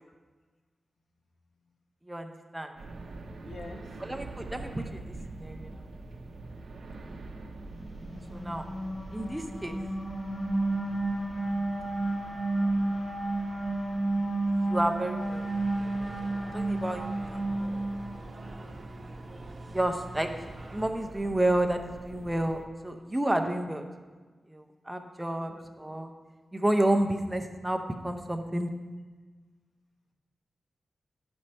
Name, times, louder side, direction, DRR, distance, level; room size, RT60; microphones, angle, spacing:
voice 1, 2.1-2.7 4.0-5.7 8.3-8.6 9.1-9.8 14.7-15.5 16.5-17.4 19.7-20.3 20.7-23.8 24.5-25.5 25.8-26.1 26.5-28.7, right 1 dB, 10° right, 5 dB, 0.6 m, -30 dB
sound 1, 2.8-22.7, right 2 dB, 75° right, 0.7 m, -46 dB
voice 2, 3.4-3.9 17.1-17.5 18.3-18.8 25.3-25.6, left 3 dB, 75° left, 2 dB, 1.1 m, -48 dB
sound 2, 7.9-18.5, right 2 dB, 55° left, 2.5 m, -31 dB
sound 3, 15.2-20.9, right 1 dB, 45° right, 0.9 m, -44 dB
10.5 x 5.3 x 4.3 m, 1.4 s
wide cardioid pair, 110°, 0 cm